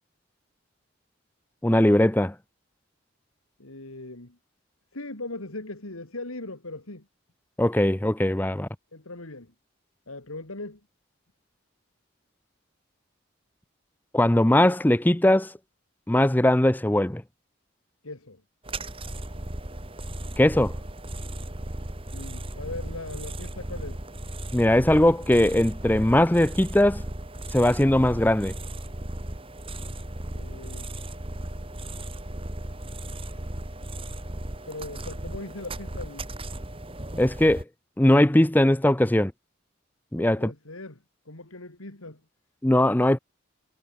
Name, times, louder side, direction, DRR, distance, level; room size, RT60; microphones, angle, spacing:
voice 1, 1.6-2.3 7.6-8.7 14.1-15.5 16.1-17.2 20.4-20.7 24.5-27.0 27.5-28.5 37.2-37.6 38.0-39.3 40.1-40.5 42.6-43.2, left 1 dB, 10° left, 0.5 m, -20 dB
voice 2, 3.6-4.4 4.9-7.1 8.9-9.5 10.1-10.8 18.0-18.4 22.1-24.0 30.3-30.9 34.7-36.3 40.2-41.0 41.2-42.2, left 2 dB, 80° left, 2.9 m, -39 dB
sound 1, 18.6-37.6, right 1 dB, 25° right, 2.7 m, -36 dB
head